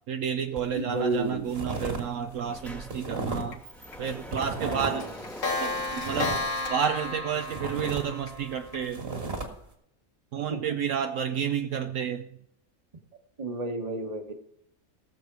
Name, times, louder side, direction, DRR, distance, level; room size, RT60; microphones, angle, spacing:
voice 1, 0.1-3.6 4.0-5.0 5.6-6.3 6.7-9.0 10.3-12.3, right 8 dB, 70° right, 7 dB, 1.0 m, -30 dB
sound 1, 0.6-0.8 1.1-2.0 2.3-3.6 4.0-5.1 5.5-7.2 7.4-9.5, right 2 dB, 45° right, 2.1 m, -35 dB
voice 2, 0.7-1.5 4.6-5.1 10.5-10.8 13.4-14.3, right 2 dB, 30° right, 5 dB, 1.3 m, -31 dB
Sliding door, 1.8-1.9 2.2-7.2, equal, ahead, 1.3 m, -45 dB
Clock, 3.5-3.6 3.9-4.1 4.4-4.5 4.8-8.8, left 2 dB, 65° left, 2.0 m, -33 dB
18.5 x 7.2 x 4.7 m, 0.75 s
omnidirectional pair, 1.5 m